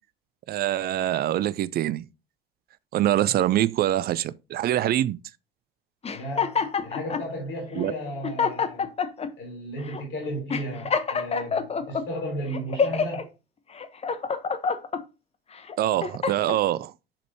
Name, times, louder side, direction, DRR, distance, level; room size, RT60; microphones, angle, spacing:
voice 1, 0.5-2.0 2.9-5.2 7.8-7.9 15.8-16.9, right 13 dB, 35° right, 0.5 m, -24 dB
sound 1, 6.0-7.3 7.9-8.0 8.2-9.3 9.9-10.0 10.5-12.0 12.5-13.2 13.7-15.0 15.6-16.6, left 5 dB, 20° left, 1.0 m, -27 dB
voice 2, 6.1-8.9 9.4-13.3, equal, 40° left, 3.7 m, -34 dB
10.0 x 5.2 x 2.8 m
figure-of-eight pair, 70°, 29 cm